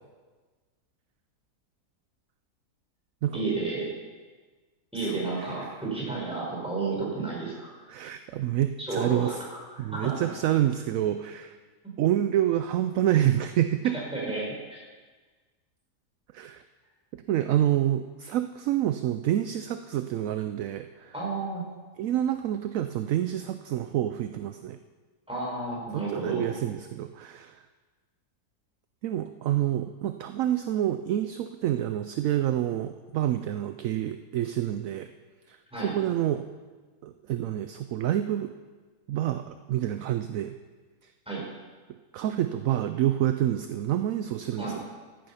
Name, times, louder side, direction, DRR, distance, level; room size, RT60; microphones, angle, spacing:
voice 1, 3.3-3.9 4.9-7.5 8.8-10.1 14.1-14.8 21.1-21.6 25.3-26.4 35.7-35.9 41.3-41.4 44.6-44.8, right 3 dB, 5° right, -5 dB, 4.5 m, -31 dB
voice 2, 4.9-5.7 7.9-9.4 9.8-11.5 12.0-14.0 16.3-16.6 17.1-21.1 22.0-24.8 25.9-27.6 29.0-35.1 35.5-35.6 35.8-36.5 37.0-38.5 39.1-40.5 42.1-44.7, right 12 dB, 70° right, 9 dB, 0.8 m, -28 dB
14.0 x 8.9 x 5.6 m, 1.4 s
omnidirectional pair, 1.7 m